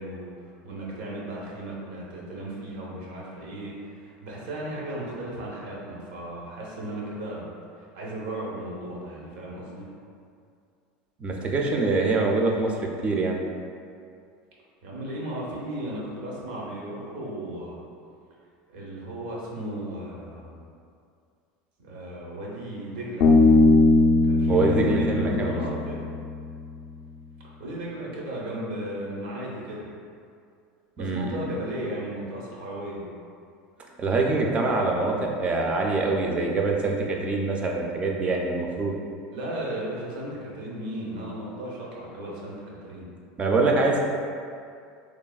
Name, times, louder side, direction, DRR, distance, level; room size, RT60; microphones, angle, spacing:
voice 1, 0.0-7.5 7.8-9.9 14.8-17.8 18.7-20.6 21.8-23.3 24.2-26.1 27.6-29.8 31.0-33.1 39.3-43.1, right 1 dB, 80° right, -4 dB, 0.7 m, -35 dB
voice 2, 11.2-12.8 13.0-13.4 24.5-25.6 31.0-31.5 34.0-39.0 43.4-44.0, right 3 dB, 25° right, 0 dB, 0.3 m, -24 dB
Bass guitar, 23.2-26.7, left 3 dB, 65° left, 0.4 m, -20 dB
3.2 x 2.1 x 2.3 m, 2.3 s
supercardioid pair, 120°, 4 cm